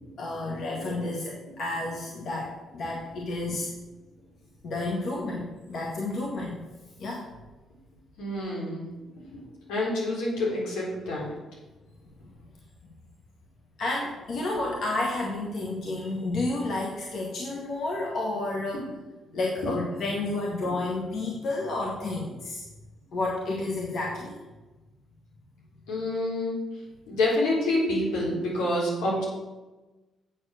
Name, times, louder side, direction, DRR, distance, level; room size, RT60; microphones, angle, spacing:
voice 1, 0.2-3.7 4.6-6.6 7.0-7.3 12.2-12.3 13.8-18.8 19.3-22.6 23.1-24.4, left 2 dB, 65° left, -1 dB, 1.7 m, -31 dB
voice 2, 8.2-8.8 9.7-11.3 25.9-26.6 27.1-29.2, left 1 dB, 90° left, -4 dB, 3.9 m, -27 dB
8.7 x 7.0 x 6.5 m, 1.1 s
supercardioid pair, 70°, 0 cm